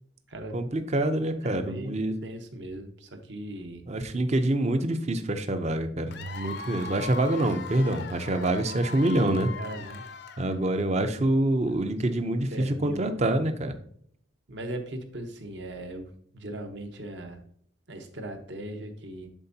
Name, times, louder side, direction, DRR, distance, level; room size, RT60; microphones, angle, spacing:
voice 1, 0.5-2.1 3.9-9.5 10.4-13.8, right 1 dB, 35° right, 9 dB, 0.6 m, -26 dB
voice 2, 1.4-1.9 2.2-3.8 9.5-10.0 11.7-11.8 12.1-13.2 14.5-17.4 17.9-19.3, right 1 dB, 60° right, 5 dB, 1.0 m, -39 dB
Cheering / Applause / Crowd, 6.1-10.8, left 4 dB, 55° left, 0.6 m, -40 dB
10.5 x 4.4 x 2.8 m, 0.64 s
head